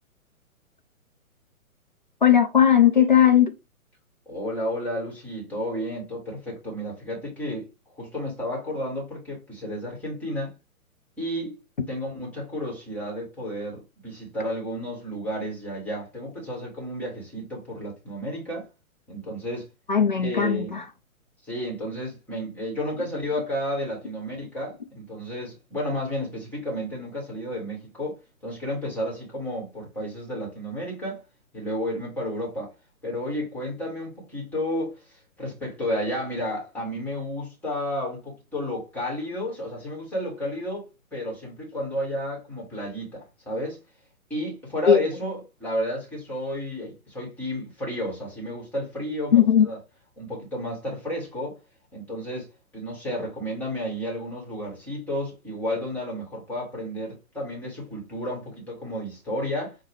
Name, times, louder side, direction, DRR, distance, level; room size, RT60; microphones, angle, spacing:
voice 1, 2.2-3.5 19.9-20.8 44.9-45.0 49.3-49.7, left 9 dB, 35° left, 0.4 m, -17 dB
voice 2, 4.3-7.7 7.9-10.5 11.2-11.6 11.9-18.7 19.1-19.7 20.2-20.8 21.4-31.2 31.5-32.7 33.0-43.8 44.3-49.8 50.2-51.6 51.9-52.5 52.7-59.8, equal, 5° left, 1.1 m, -32 dB
5.4 x 2.2 x 3.2 m
figure-of-eight pair, 125°, 43 cm